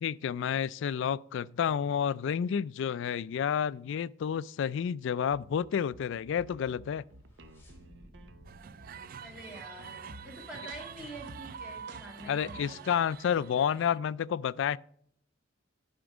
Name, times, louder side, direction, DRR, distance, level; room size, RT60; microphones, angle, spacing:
voice 1, 0.0-7.0 12.3-14.8, left 8 dB, 65° left, 0.3 m, -30 dB
sound 1, 5.3-13.0, right 1 dB, 65° right, 0.8 m, -53 dB
sound 2, 7.1-10.3, equal, 15° left, 2.9 m, -58 dB
sound 3, 8.4-14.0, right 7 dB, 50° right, 0.4 m, -46 dB
voice 2, 9.2-12.9, right 1 dB, 5° right, 2.3 m, -46 dB
11.5 x 5.2 x 4.9 m
head